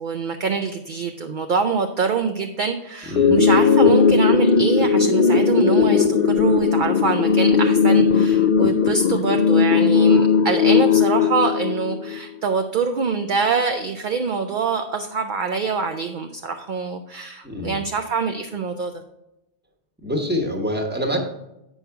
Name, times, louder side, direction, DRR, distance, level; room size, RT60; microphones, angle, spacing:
voice 1, 0.0-19.0, right 5 dB, 55° right, 6 dB, 0.6 m, -25 dB
voice 2, 3.1-3.4 17.4-17.8 20.0-21.2, equal, 10° right, 2 dB, 1.1 m, -25 dB
sound 1, 3.2-12.2, left 6 dB, 55° left, 0.6 m, -17 dB
8.2 x 5.5 x 4.6 m, 0.93 s
omnidirectional pair, 1.2 m